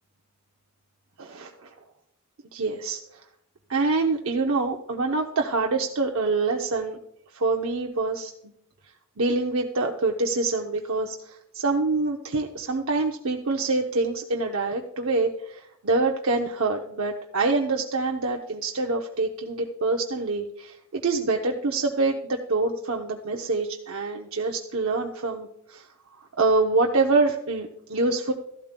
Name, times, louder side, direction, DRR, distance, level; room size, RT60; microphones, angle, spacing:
voice 1, 1.2-1.7 2.5-3.2 3.7-7.0 7.3-8.3 9.2-25.9 26.4-28.3, right 3 dB, 70° right, 1 dB, 0.8 m, -26 dB
14.5 x 12.0 x 2.2 m, 0.76 s
head